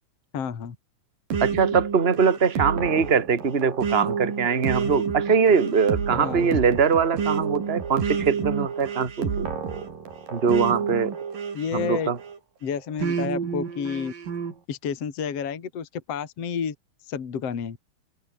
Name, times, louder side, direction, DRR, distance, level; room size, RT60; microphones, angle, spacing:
voice 1, 0.3-0.7 6.1-6.6 11.5-12.1 12.6-14.1 14.7-16.7 17.1-17.8, left 7 dB, 40° left, 3.2 m, -30 dB
sound 1, 1.3-12.4 13.0-14.5, right 6 dB, 60° right, 5.5 m, -29 dB
voice 2, 1.4-9.5 10.3-11.2 11.7-12.2, right 6 dB, 20° right, 1.9 m, -22 dB
omnidirectional pair, 4.6 m